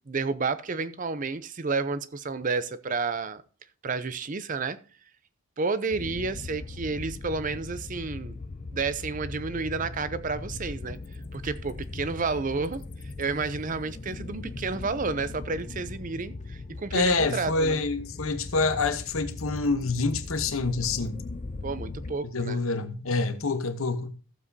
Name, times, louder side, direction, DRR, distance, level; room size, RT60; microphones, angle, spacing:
voice 1, 0.1-3.4 3.8-4.8 5.6-8.4 8.7-11.0 11.3-12.8 13.2-17.8 21.6-22.6, right 4 dB, 35° right, 0.5 m, -31 dB
sound 1, 5.9-22.1, left 3 dB, 35° left, 0.5 m, -39 dB
voice 2, 16.9-21.2 22.2-24.1, left 3 dB, 70° left, 1.0 m, -27 dB
15.0 x 7.3 x 2.7 m
head